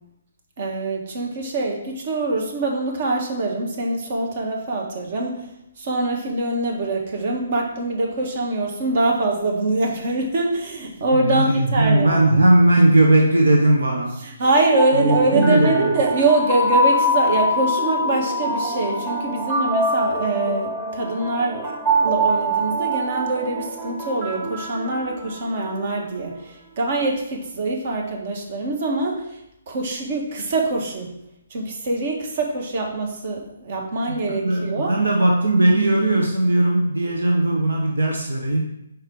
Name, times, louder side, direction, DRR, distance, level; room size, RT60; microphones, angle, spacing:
voice 1, 0.6-12.4 14.2-29.4 29.7-31.1 31.5-35.0, right 2 dB, 50° right, 1 dB, 1.5 m, -24 dB
voice 2, 11.2-14.2 14.9-15.9 34.3-38.6, right 1 dB, 75° right, 1 dB, 0.9 m, -18 dB
sound 1, 14.6-25.7, equal, 15° right, 1.3 m, -24 dB
4.8 x 4.8 x 4.7 m, 0.82 s
figure-of-eight pair, 135°, 0 cm